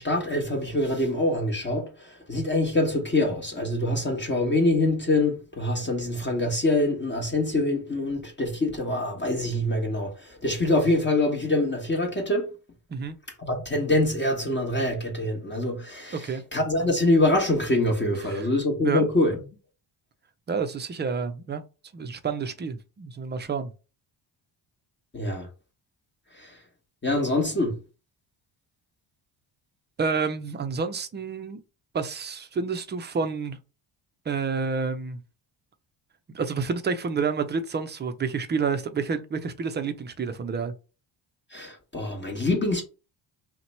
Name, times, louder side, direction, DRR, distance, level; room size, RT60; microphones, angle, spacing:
voice 1, 0.0-1.9 2.3-10.1 10.4-12.5 13.4-16.3 16.5-19.3 25.1-25.5 26.4-26.5 27.0-27.8 41.5-42.8, left 2 dB, 25° left, 1.0 m, -25 dB
voice 2, 16.1-16.4 18.2-18.5 18.8-19.1 20.5-21.6 21.9-23.7 30.0-31.6 31.9-33.6 34.3-35.2 36.3-40.7, right 5 dB, 25° right, 0.4 m, -29 dB
2.8 x 2.1 x 4.1 m
cardioid pair, 90°, 47 cm